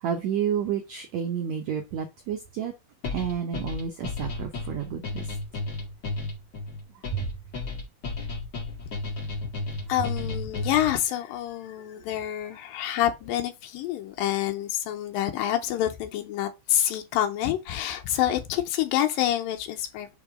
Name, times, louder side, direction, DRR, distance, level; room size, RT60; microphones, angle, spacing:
voice 1, 0.0-2.7 3.1-5.3 7.1-7.3, right 8 dB, 85° right, 1.5 m, -30 dB
sound 1, 3.0-10.9, left 3 dB, 40° left, 1.6 m, -33 dB
voice 2, 9.9-20.1, left 12 dB, 80° left, 2.3 m, -27 dB
5.3 x 3.6 x 4.8 m
omnidirectional pair, 4.3 m